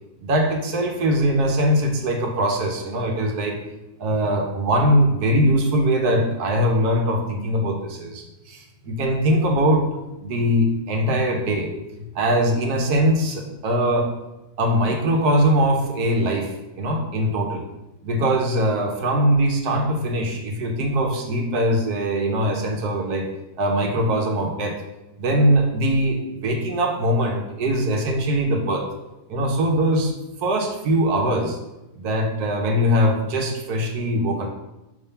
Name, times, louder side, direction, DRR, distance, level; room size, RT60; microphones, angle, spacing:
voice 1, 0.2-3.6 4.0-9.9 10.2-11.7 12.1-14.1 14.6-17.6 18.0-23.3 23.6-24.8 25.2-28.8 29.3-30.1 30.4-31.6 31.9-34.5, equal, 80° right, 2 dB, 1.4 m, -21 dB
5.6 x 3.6 x 5.6 m, 0.98 s
omnidirectional pair, 1.7 m